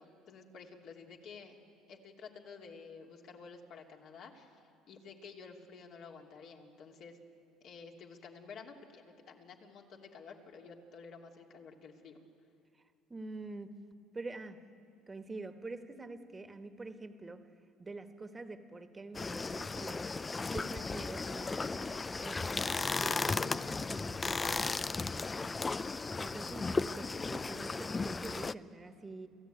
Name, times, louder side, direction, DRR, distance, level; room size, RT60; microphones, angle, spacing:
voice 1, 0.0-1.6 1.9-7.2 7.6-12.2, left 5 dB, 60° left, 1 dB, 2.8 m, -51 dB
voice 2, 13.1-13.7 14.1-14.6 15.1-17.5 17.8-20.1 20.4-25.6 26.2-29.3, right 3 dB, 20° right, 8 dB, 1.6 m, -46 dB
sound 1, 19.1-28.5, left 4 dB, 25° left, 0.4 m, -35 dB
28.5 x 14.5 x 9.3 m, 2.5 s
supercardioid pair, 90°, 0 cm